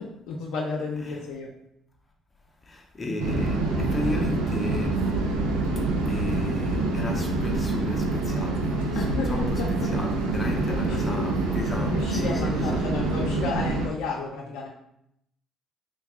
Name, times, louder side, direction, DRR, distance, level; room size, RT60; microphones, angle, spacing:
voice 1, 0.0-1.5 9.0-9.7 10.7-11.3 11.8-14.7, left 4 dB, 75° left, -2 dB, 0.5 m, -32 dB
voice 2, 2.7-5.0 6.1-8.6 8.9-9.6 9.9-12.9, left 2 dB, 25° left, 1 dB, 0.6 m, -34 dB
sound 1, 3.2-13.9, right 2 dB, 90° right, 0.5 m, -26 dB
3.5 x 2.2 x 3.6 m, 0.76 s
supercardioid pair, 65°, 0 cm